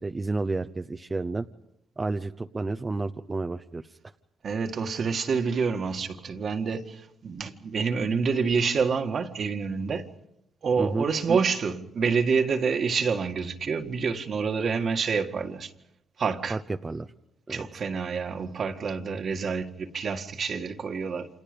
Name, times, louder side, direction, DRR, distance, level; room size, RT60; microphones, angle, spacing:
voice 1, 0.0-1.5 2.0-3.8 10.8-11.1 16.5-17.1 17.5-17.7, right 3 dB, 25° right, 0.8 m, -31 dB
voice 2, 4.4-10.1 10.6-15.7 16.2-16.6 17.5-21.3, right 5 dB, 50° right, 1.9 m, -27 dB
29.5 x 27.0 x 5.3 m
cardioid pair, 90°, 0 cm